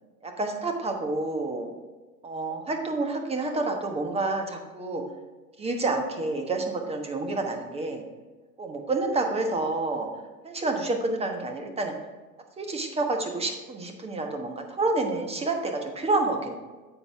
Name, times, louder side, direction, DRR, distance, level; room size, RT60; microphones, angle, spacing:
voice 1, 0.2-1.7 2.2-5.0 5.6-8.0 8.6-10.1 10.4-11.9 12.6-16.5, right 2 dB, 15° right, 4 dB, 1.2 m, -28 dB
9.4 x 7.8 x 3.5 m, 1.3 s
figure-of-eight pair, 90°, 45 cm